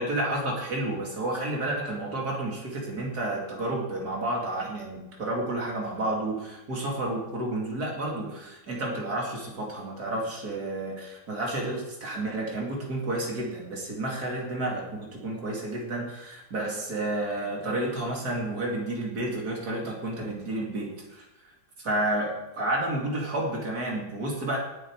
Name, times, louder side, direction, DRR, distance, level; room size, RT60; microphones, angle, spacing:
voice 1, 0.0-21.3 21.8-24.6, right 1 dB, 50° right, -1 dB, 3.3 m, -31 dB
18.0 x 7.8 x 4.8 m, 0.99 s
omnidirectional pair, 2.2 m